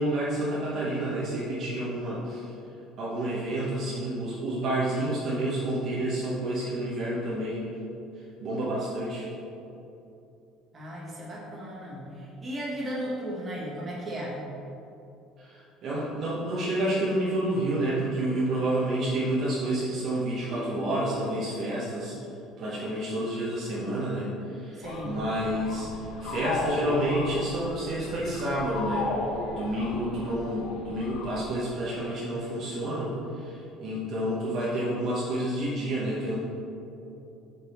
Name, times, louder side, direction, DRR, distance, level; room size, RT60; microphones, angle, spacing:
voice 1, 0.0-2.5 3.0-7.7 8.4-9.3 15.4-22.1 22.6-29.1 29.5-36.4, right 1 dB, 40° right, -7 dB, 1.0 m, -29 dB
voice 2, 10.7-14.4 24.8-25.2, equal, 20° right, -6 dB, 1.5 m, -35 dB
sound 1, 20.5-22.9, left 1 dB, 30° left, 1.4 m, -44 dB
sound 2, 24.8-31.5, left 3 dB, 70° left, 0.7 m, -35 dB
5.9 x 5.3 x 4.4 m, 2.8 s
cardioid pair, 175°, 0 cm